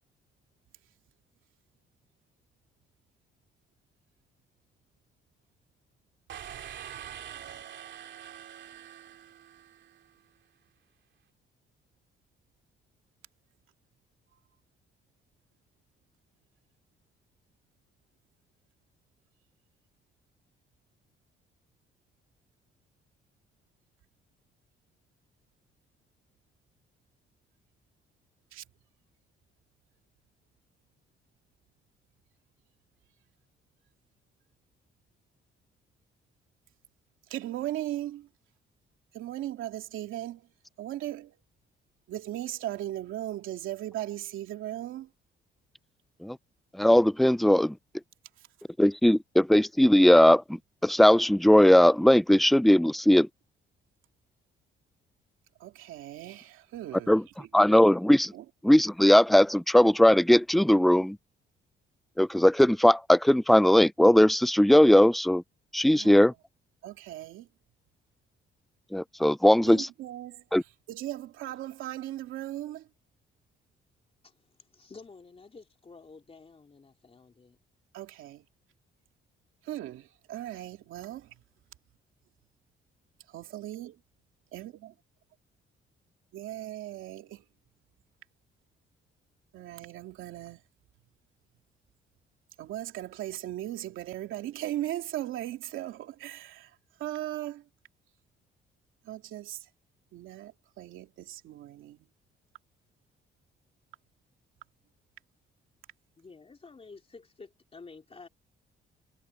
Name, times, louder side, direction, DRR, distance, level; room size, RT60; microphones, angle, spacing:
sound 1, 6.3-10.1, right 10 dB, 65° right, 2.9 m, -44 dB
voice 1, 37.3-38.3 39.1-40.5 40.8-41.4 42.1-45.1 55.6-57.5 58.3-58.4 65.9-66.3 66.8-67.5 69.7-70.4 70.9-72.9 77.9-78.4 79.6-81.3 83.3-84.0 84.5-84.9 86.3-87.4 89.5-90.6 92.6-97.6 99.0-99.7 100.1-102.1, right 13 dB, 85° right, 2.6 m, -38 dB
voice 2, 46.8-47.7 48.8-50.4 50.8-53.3 57.1-57.2 57.5-58.3 58.6-61.2 62.2-65.4 65.7-66.3 68.9-69.9 70.5-70.6, left 1 dB, ahead, 0.4 m, -19 dB
voice 3, 74.2-77.6 106.2-108.3, left 4 dB, 30° left, 3.4 m, -51 dB
cardioid pair, 90°, 20 cm